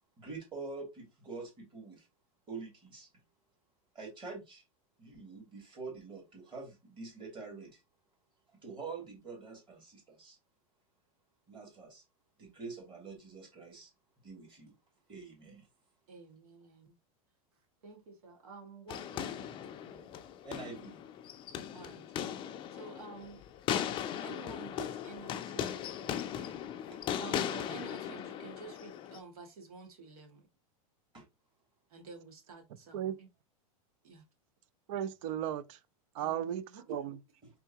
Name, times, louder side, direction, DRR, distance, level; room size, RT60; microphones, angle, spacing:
voice 1, 0.2-2.1 2.5-3.1 3.9-4.6 5.0-7.8 8.5-10.4 11.5-12.0 12.4-14.7 15.1-15.7 20.4-21.0 26.9-27.0 31.1-31.2 37.4-37.5, right 4 dB, 25° right, 2.6 m, -46 dB
voice 2, 16.1-16.9 17.8-20.2 21.7-22.3 22.7-23.4 23.8-25.8 26.0-26.4 27.2-30.4 31.9-33.3 34.0-34.2 36.2-36.8, right 4 dB, 80° right, 2.1 m, -51 dB
sound 1, 18.9-29.2, left 9 dB, 25° left, 0.4 m, -38 dB
voice 3, 34.9-35.8 36.1-37.2, right 10 dB, 60° right, 0.5 m, -35 dB
4.4 x 3.6 x 2.9 m
supercardioid pair, 140°, 19 cm